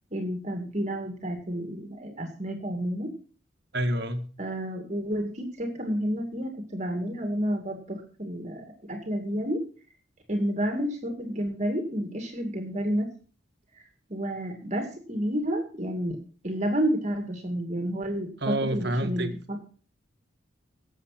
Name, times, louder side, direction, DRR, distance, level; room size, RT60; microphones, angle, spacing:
voice 1, 0.1-3.1 4.4-9.6 10.3-13.1 14.1-16.2 16.4-19.6, equal, 35° right, 4 dB, 2.3 m, -30 dB
voice 2, 3.7-4.3 18.4-19.3, right 1 dB, 55° right, 7 dB, 1.8 m, -28 dB
18.0 x 7.7 x 5.9 m, 0.41 s
head